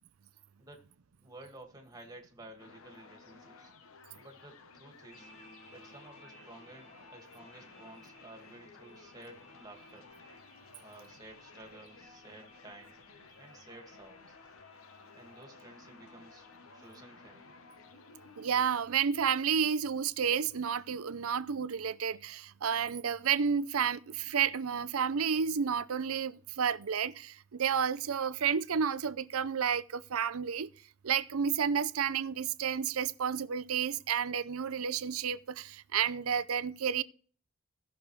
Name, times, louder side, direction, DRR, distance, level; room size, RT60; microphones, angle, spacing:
voice 1, 1.2-3.7 4.2-5.3 5.7-10.1 10.8-13.0 13.4-14.4 15.1-16.5 16.7-17.6, right 2 dB, 20° right, 1.9 m, -53 dB
sound 1, 2.6-18.5, left 4 dB, 80° left, 1.0 m, -56 dB
sound 2, 5.1-19.6, left 1 dB, 30° left, 1.9 m, -60 dB
voice 2, 18.4-30.7 31.0-37.0, right 7 dB, 90° right, 0.6 m, -31 dB
17.5 x 6.4 x 3.2 m
head